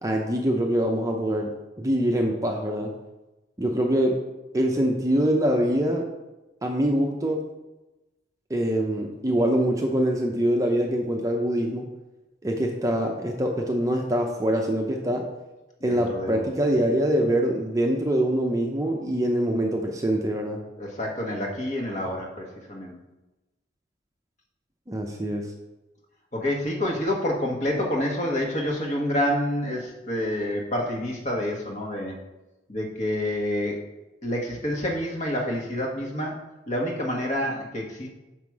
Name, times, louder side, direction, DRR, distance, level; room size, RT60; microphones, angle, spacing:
voice 1, 0.0-1.5 1.8-2.9 3.6-4.2 4.5-6.1 6.6-7.4 8.5-11.9 12.4-15.3 15.8-20.6 24.9-25.5, right 1 dB, 15° right, 1 dB, 0.6 m, -24 dB
voice 2, 15.8-16.5 20.8-22.9 26.3-32.2 32.7-33.8 34.2-36.4 36.7-38.1, left 1 dB, 40° left, 0 dB, 1.3 m, -28 dB
6.1 x 5.7 x 4.7 m, 1.0 s
head